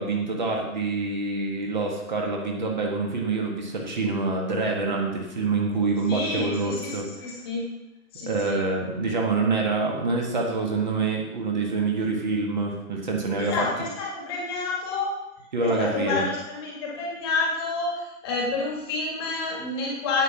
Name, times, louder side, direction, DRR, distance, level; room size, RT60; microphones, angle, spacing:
voice 1, 0.0-7.1 8.2-13.7 15.5-16.2, right 3 dB, 30° right, 1 dB, 1.6 m, -26 dB
voice 2, 6.1-7.7 8.1-8.6 13.4-15.1 15.6-20.2, left 3 dB, 15° left, -1 dB, 1.7 m, -29 dB
9.8 x 8.2 x 5.9 m, 0.95 s
figure-of-eight pair, 155°, 45 cm